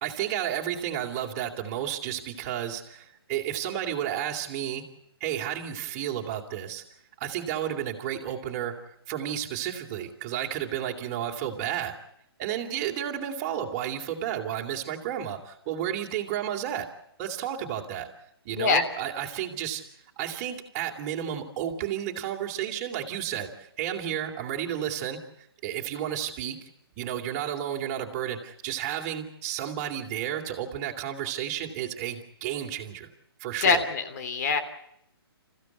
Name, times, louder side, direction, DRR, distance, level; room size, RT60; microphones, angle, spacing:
voice 1, 0.0-4.8 5.2-6.8 7.2-8.7 9.1-11.9 12.4-16.9 17.2-18.1 18.4-19.8 20.2-26.7 27.0-33.1 33.4-33.8, right 10 dB, 25° right, 1 dB, 3.1 m, -32 dB
voice 2, 18.5-18.8 33.6-34.6, left 4 dB, 40° left, 10 dB, 3.1 m, -24 dB
28.0 x 15.5 x 8.3 m, 0.76 s
hypercardioid pair, 160°, 13 cm